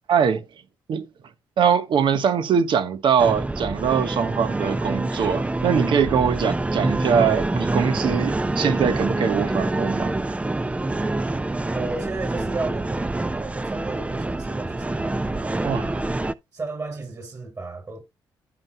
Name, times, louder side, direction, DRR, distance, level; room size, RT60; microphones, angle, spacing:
voice 1, 0.1-0.4 0.9-1.0 1.6-10.1 15.6-15.9, right 7 dB, 65° right, 1.2 m, -22 dB
sound 1, 3.2-16.3, right 2 dB, 15° right, 0.5 m, -26 dB
voice 2, 11.7-15.7 16.5-18.0, right 3 dB, 40° right, 6.0 m, -33 dB
15.0 x 6.0 x 2.2 m
supercardioid pair, 60°, 9 cm